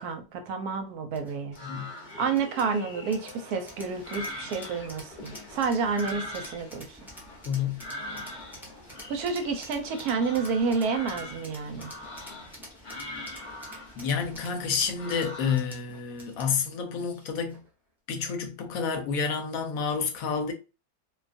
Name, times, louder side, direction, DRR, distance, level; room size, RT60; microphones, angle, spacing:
voice 1, 0.0-1.6 2.2-7.0 9.1-11.9, right 5 dB, 80° right, 1.1 m, -29 dB
sound 1, 1.1-17.7, equal, ahead, 0.4 m, -48 dB
sound 2, 1.5-15.8, left 1 dB, 45° left, 0.6 m, -43 dB
voice 2, 7.5-7.8 13.9-17.6 18.1-20.5, left 6 dB, 70° left, 1.0 m, -29 dB
2.6 x 2.3 x 2.4 m
omnidirectional pair, 1.6 m